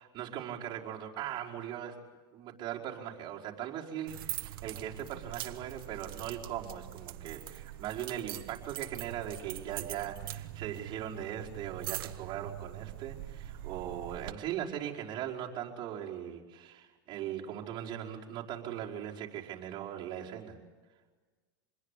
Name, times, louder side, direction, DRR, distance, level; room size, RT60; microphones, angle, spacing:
voice 1, 0.0-2.0 2.3-20.6, right 10 dB, 40° right, -2 dB, 5.0 m, -39 dB
sound 1, 4.1-14.3, right 14 dB, 70° right, 1.4 m, -43 dB
27.5 x 21.5 x 8.5 m, 1.3 s
supercardioid pair, 125°, 12 cm